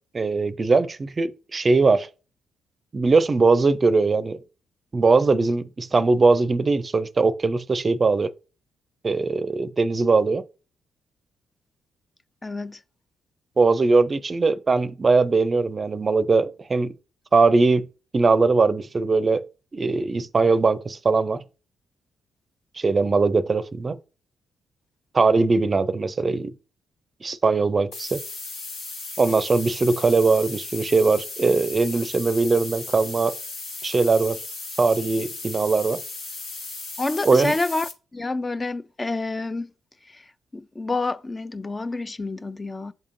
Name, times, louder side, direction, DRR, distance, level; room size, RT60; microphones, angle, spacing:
voice 1, 0.1-2.1 2.9-4.4 4.9-8.3 9.0-10.4 13.6-16.9 17.3-17.9 18.1-19.4 19.7-21.4 22.8-24.0 25.1-26.5 27.2-28.2 29.2-33.4 33.8-34.4 34.8-36.0 37.2-37.6, right 3 dB, 40° right, 0.5 m, -20 dB
voice 2, 12.4-12.8 37.0-39.7 40.1-40.3 40.5-42.9, left 2 dB, 25° left, 0.4 m, -28 dB
sound 1, 27.9-37.9, left 3 dB, 80° left, 1.3 m, -36 dB
10.5 x 3.6 x 2.6 m
supercardioid pair, 55°, 0 cm